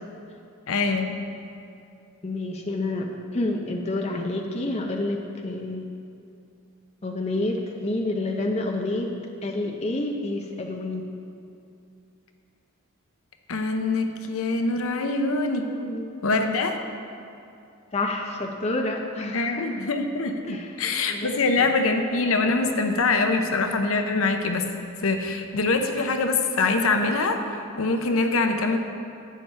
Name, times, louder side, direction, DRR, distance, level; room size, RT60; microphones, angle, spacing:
voice 1, 0.7-1.1 13.5-15.7 16.2-16.8 19.3-24.7 25.0-28.8, left 3 dB, 70° left, 5 dB, 0.7 m, -24 dB
voice 2, 2.2-5.9 7.0-9.1 9.4-11.0 15.6-16.1 17.9-19.7 20.4-20.7 21.1-21.7, left 2 dB, 30° left, 2 dB, 0.5 m, -29 dB
11.0 x 8.4 x 3.3 m, 2.6 s
head